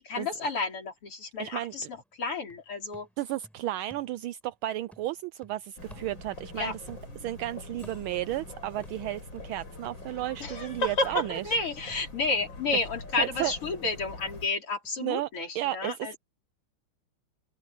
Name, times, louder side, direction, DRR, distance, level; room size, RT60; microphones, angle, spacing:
voice 1, 0.1-3.1 6.5-6.7 10.4-16.2, left 3 dB, 85° left, 5.6 m, -31 dB
sound 1, 1.0-1.1 1.4-4.6 4.9-6.6 6.9-8.5 8.8-14.5 14.8-14.9, equal, ahead, 5.9 m, -57 dB
voice 2, 1.4-1.7 3.2-11.6 13.2-13.5 15.0-15.3 15.5-16.2, right 14 dB, 75° right, 1.4 m, -33 dB
sound 2, 5.8-14.5, left 2 dB, 55° left, 7.6 m, -44 dB
open air
omnidirectional pair, 2.4 m